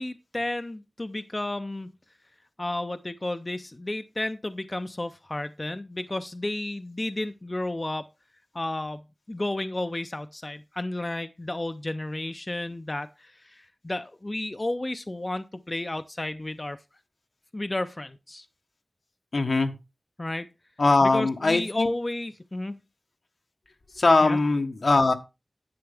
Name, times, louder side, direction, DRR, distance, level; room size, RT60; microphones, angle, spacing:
voice 1, 0.0-1.9 2.6-8.1 8.5-16.8 17.5-18.5 20.2-20.5 21.0-22.8 24.2-24.4, left 1 dB, 35° left, 0.5 m, -32 dB
voice 2, 19.3-19.8 20.8-21.9 23.9-25.1, left 3 dB, 80° left, 1.1 m, -21 dB
10.5 x 7.8 x 3.4 m
wide cardioid pair, 65°, 0 cm